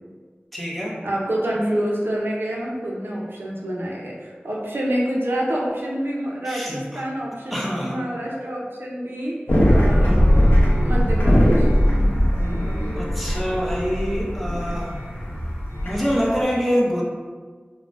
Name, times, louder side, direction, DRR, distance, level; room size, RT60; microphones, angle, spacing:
voice 1, 0.5-1.0 6.4-7.0 7.5-8.0 12.9-14.9 15.8-17.0, equal, ahead, -4 dB, 0.5 m, -25 dB
voice 2, 1.0-9.4 9.7-10.3 10.8-11.7, right 1 dB, 70° right, -3 dB, 0.5 m, -27 dB
sound 1, 9.5-16.4, equal, 80° left, 0.6 m, -19 dB
3.6 x 2.0 x 2.4 m, 1.5 s
wide cardioid pair, 50°, 4 cm